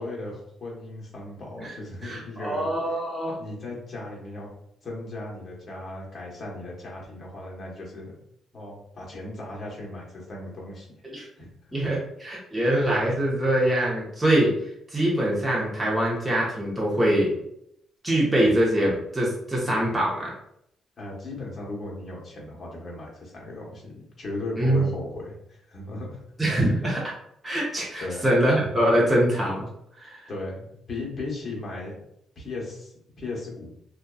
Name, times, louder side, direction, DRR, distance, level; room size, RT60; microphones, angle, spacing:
voice 1, 0.0-2.7 3.4-4.5 4.8-8.1 8.5-10.9 11.1-11.8 12.5-12.6 21.0-26.2 28.0-28.2 30.3-32.0 32.4-33.7, left 2 dB, 40° left, -3 dB, 1.0 m, -37 dB
voice 2, 2.0-3.4 11.1-11.3 11.7-12.0 12.2-14.5 14.9-17.3 18.0-20.3 24.6-24.8 26.4-27.0 27.4-29.7 30.0-30.2, right 1 dB, 10° right, -5 dB, 0.8 m, -23 dB
2.6 x 2.2 x 2.3 m, 0.74 s
cardioid pair, 90°, 0 cm